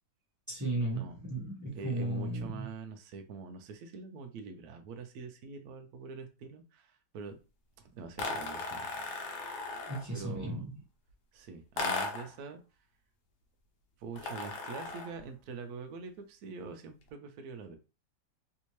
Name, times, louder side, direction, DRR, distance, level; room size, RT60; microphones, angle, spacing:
voice 1, 0.5-2.7 9.9-10.7, right 2 dB, 15° right, -4 dB, 0.6 m, -35 dB
voice 2, 1.7-7.4 7.8-9.0 10.1-10.7 11.3-12.6 14.0-17.8, right 4 dB, 70° right, 6 dB, 0.9 m, -45 dB
sound 1, 8.2-10.1 11.8-12.4 14.2-15.2, left 3 dB, 70° left, 1.2 m, -36 dB
3.4 x 2.7 x 3.0 m, 0.32 s
omnidirectional pair, 2.1 m